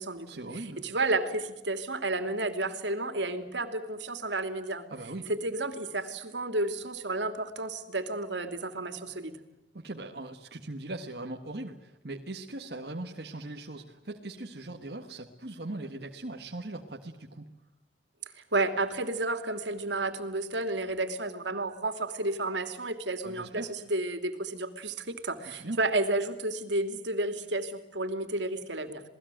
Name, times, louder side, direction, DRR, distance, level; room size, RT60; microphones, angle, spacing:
voice 1, 0.3-0.8 4.9-5.3 9.7-17.5 23.2-23.7 25.4-25.8, right 2 dB, 60° right, 2 dB, 1.6 m, -40 dB
voice 2, 0.8-4.9 5.3-9.4 18.5-29.0, right 2 dB, 85° right, 8 dB, 2.9 m, -31 dB
28.0 x 19.0 x 9.2 m, 0.99 s
head